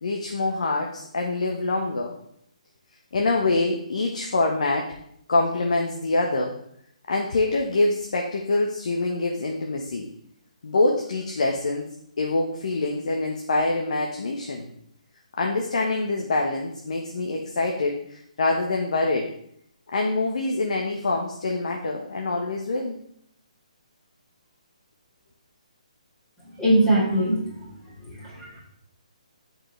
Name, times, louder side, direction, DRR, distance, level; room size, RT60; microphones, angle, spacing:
voice 1, 0.0-2.2 3.1-4.9 5.3-6.6 7.1-10.1 10.6-11.9 12.2-14.7 15.4-19.3 19.9-22.9, left 2 dB, 65° left, 1 dB, 1.3 m, -25 dB
voice 2, 26.6-27.7 28.0-28.6, right 1 dB, 10° left, -7 dB, 3.9 m, -22 dB
12.5 x 5.2 x 3.4 m, 0.70 s
figure-of-eight pair, 145°, 4 cm